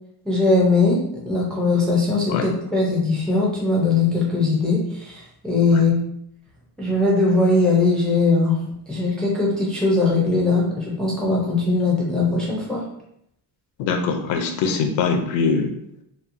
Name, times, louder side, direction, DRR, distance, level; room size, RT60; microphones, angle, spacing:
voice 1, 0.3-1.0 1.2-6.0 6.8-8.6 8.9-12.8, left 3 dB, ahead, -4 dB, 0.4 m, -20 dB
voice 2, 13.8-15.7, left 5 dB, 85° left, 5 dB, 0.6 m, -22 dB
2.9 x 2.0 x 2.5 m, 0.75 s
cardioid pair, 135°, 45 cm